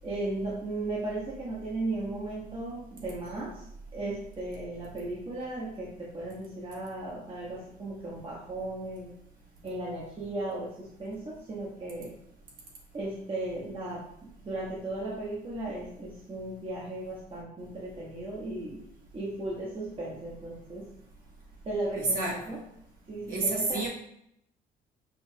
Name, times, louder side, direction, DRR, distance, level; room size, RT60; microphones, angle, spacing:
voice 1, 0.0-3.6 3.9-9.1 9.6-12.1 12.9-18.8 19.1-20.9 21.6-22.6 23.1-23.9, right 2 dB, 35° right, -5 dB, 1.1 m, -36 dB
voice 2, 22.0-22.5 23.3-23.9, right 3 dB, 55° right, -3 dB, 1.5 m, -29 dB
6.0 x 2.4 x 2.7 m, 0.74 s
cardioid pair, 110°, 17 cm